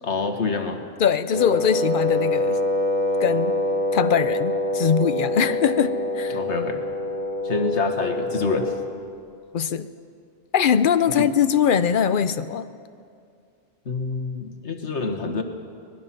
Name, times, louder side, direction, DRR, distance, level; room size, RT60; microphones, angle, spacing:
voice 1, 0.0-0.8 1.7-1.8 6.3-6.8 7.4-8.8 11.1-11.3 13.9-15.4, left 4 dB, 85° left, 6 dB, 1.9 m, -27 dB
voice 2, 1.0-2.6 3.2-3.6 3.9-6.4 9.5-9.9 10.5-12.7, left 8 dB, 55° left, 12 dB, 0.8 m, -22 dB
Wind instrument woodwind instrument, 1.3-8.9, left 1 dB, 40° right, 3.2 m, -25 dB
24.5 x 19.0 x 5.9 m, 2.4 s
omnidirectional pair, 1.1 m